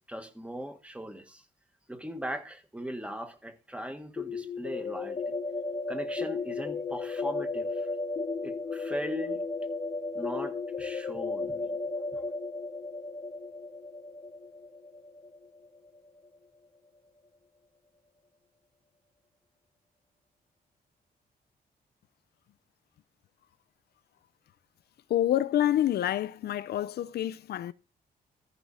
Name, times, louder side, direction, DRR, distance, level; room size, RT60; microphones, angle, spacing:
voice 1, 0.0-1.4 1.9-5.3 5.9-7.9 8.4-9.4 10.1-11.7 12.1-12.2, equal, 5° right, 1.6 m, -39 dB
sound 1, 4.2-15.9, left 3 dB, 35° left, 1.1 m, -34 dB
voice 2, 25.1-27.7, left 12 dB, 80° left, 0.5 m, -27 dB
14.0 x 6.3 x 4.2 m
cardioid pair, 115°, 16 cm